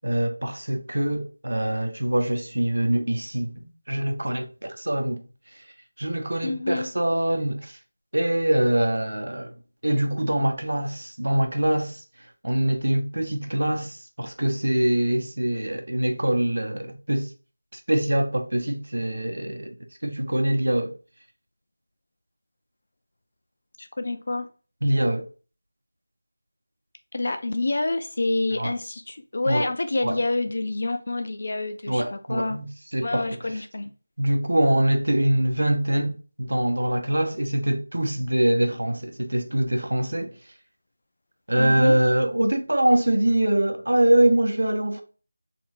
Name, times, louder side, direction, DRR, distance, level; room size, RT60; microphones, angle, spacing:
voice 1, 0.0-5.2 6.0-7.8 8.1-9.5 9.8-12.0 12.4-17.3 17.9-19.7 20.0-20.9 24.8-25.3 28.6-28.7 29.5-29.7 30.0-30.2 31.9-33.4 34.2-40.3 41.5-45.0, right 1 dB, 80° right, 1.0 m, -24 dB
voice 2, 6.4-6.9 23.8-24.5 27.1-32.6 33.0-33.9 41.5-42.0, left 2 dB, 35° left, 0.5 m, -28 dB
4.4 x 3.7 x 2.6 m
figure-of-eight pair, 180°, 0 cm